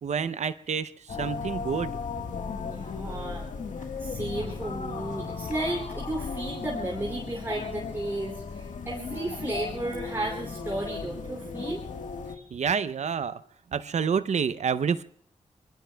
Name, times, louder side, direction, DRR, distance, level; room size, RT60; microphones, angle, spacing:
voice 1, 0.0-1.9 12.5-13.4 13.7-15.0, right 6 dB, 65° right, 13 dB, 0.6 m, -28 dB
sound 1, 1.1-12.4, left 5 dB, 90° left, 1.4 m, -36 dB
voice 2, 2.6-3.5 3.8-11.8 12.3-12.5, right 1 dB, 20° right, -1 dB, 2.8 m, -34 dB
26.0 x 23.0 x 2.3 m, 0.63 s
wide cardioid pair, 145°, 13 cm